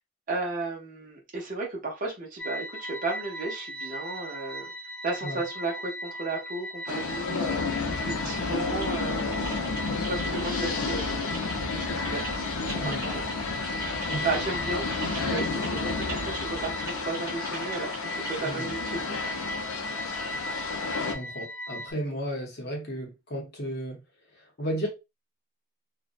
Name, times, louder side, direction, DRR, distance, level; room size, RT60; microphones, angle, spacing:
voice 1, 0.3-4.7 5.0-9.3 10.1-11.3 11.7-12.2 12.6-13.3 13.6-13.9 14.2-19.0, right 3 dB, 35° right, 0.6 m, -34 dB
sound 1, 2.4-21.9, equal, 5° left, 0.5 m, -38 dB
sound 2, 6.9-21.1, left 4 dB, 85° left, 0.5 m, -31 dB
Typing, 8.8-18.7, right 2 dB, 10° right, 0.9 m, -42 dB
voice 2, 21.0-24.0 24.3-24.9, right 1 dB, 45° left, 0.7 m, -34 dB
2.5 x 2.1 x 2.4 m
head